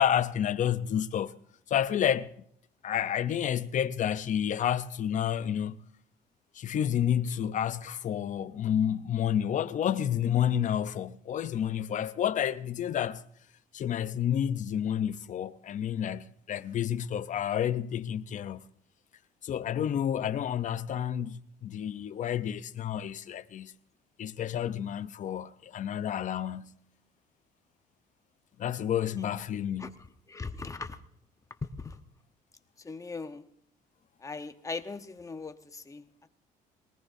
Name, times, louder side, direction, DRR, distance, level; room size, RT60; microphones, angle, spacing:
voice 1, 0.0-1.3 1.7-2.3 2.8-5.8 6.5-13.2 13.7-18.7 19.4-23.7 24.2-26.8 28.6-30.0, left 9 dB, 50° left, 0.7 m, -30 dB
voice 2, 30.3-31.0 31.6-32.0 32.8-33.4 34.2-36.3, left 4 dB, 20° left, 1.0 m, -39 dB
21.5 x 19.0 x 2.7 m
cardioid pair, 110°, 17 cm